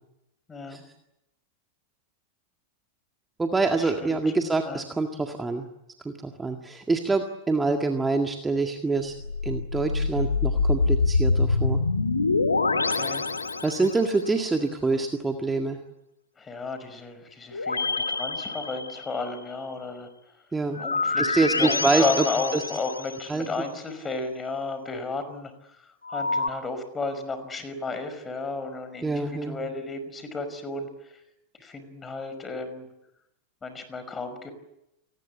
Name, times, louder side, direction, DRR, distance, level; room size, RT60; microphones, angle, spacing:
voice 1, 0.5-0.8 3.7-4.3 4.7-4.8 12.7-13.3 16.4-20.1 20.7-31.2 31.6-32.9 33.6-34.5, left 3 dB, 15° left, 10 dB, 5.3 m, -33 dB
voice 2, 3.4-5.7 6.0-9.1 9.4-11.8 13.6-15.8 20.5-20.8 21.2-22.2 22.5-22.6 23.3-23.5 29.0-29.6, right 3 dB, 10° right, 4 dB, 1.9 m, -26 dB
sound 1, 9.1-14.2 17.5-19.3 20.7-23.3 26.0-26.5, left 3 dB, 80° left, 1.7 m, -26 dB
29.5 x 19.5 x 8.5 m, 0.89 s
figure-of-eight pair, 90°, 0 cm